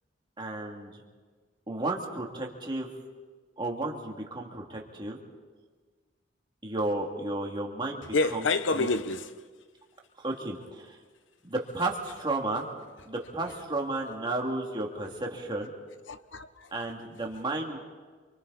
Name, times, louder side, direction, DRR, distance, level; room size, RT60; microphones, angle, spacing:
voice 1, 0.4-1.0 1.7-2.9 3.6-5.2 6.6-8.0 8.3-8.4 10.2-11.0 11.4-12.7 13.1-15.7 16.7-17.8, right 2 dB, 25° right, 2.6 m, -33 dB
voice 2, 8.1-9.5 16.1-16.9, left 3 dB, 80° left, 1.0 m, -28 dB
28.0 x 25.0 x 4.2 m
head